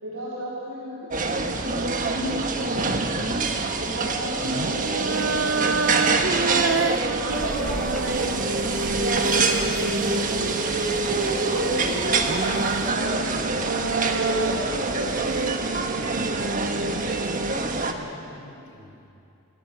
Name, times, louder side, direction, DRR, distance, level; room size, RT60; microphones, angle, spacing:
voice 1, 0.0-1.8 2.1-3.2 3.8-5.8 6.4-6.8 7.1-10.5 10.9-13.2 13.7-15.2, equal, 80° right, -7 dB, 3.8 m, -32 dB
sound 1, 1.1-17.9, right 3 dB, 40° right, 1.3 m, -26 dB
sound 2, 2.7-3.1 4.4-11.1 11.9-17.6, right 3 dB, 60° right, 0.8 m, -29 dB
sound 3, 7.3-12.9, equal, ahead, 1.0 m, -39 dB
voice 2, 16.7-19.1, left 1 dB, 65° left, 0 dB, 5.0 m, -43 dB
27.5 x 16.0 x 6.8 m, 2.7 s
head